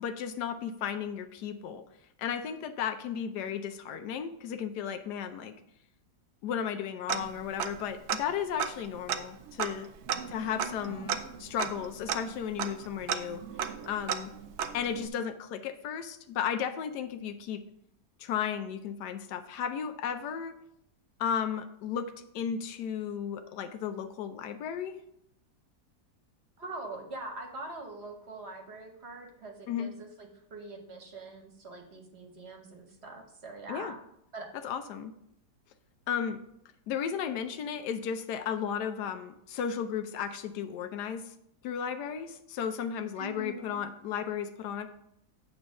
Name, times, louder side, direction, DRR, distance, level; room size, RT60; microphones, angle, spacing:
voice 1, 0.0-1.8 2.2-5.5 6.4-9.9 10.3-13.4 13.9-14.3 14.7-17.6 18.2-20.6 21.2-25.0 29.7-29.9 33.7-33.9 34.6-35.1 36.1-36.4 36.9-41.3 41.6-44.9, left 8 dB, 85° left, 9 dB, 1.2 m, -34 dB
Tick-tock, 7.1-7.8 8.1-8.2 8.6-15.1, right 8 dB, 90° right, 0.6 m, -35 dB
voice 2, 10.2-10.9 26.6-34.0 34.3-34.5 43.2-43.8, right 2 dB, 45° right, 3 dB, 1.1 m, -43 dB
8.9 x 3.1 x 6.2 m, 0.77 s
omnidirectional pair, 1.8 m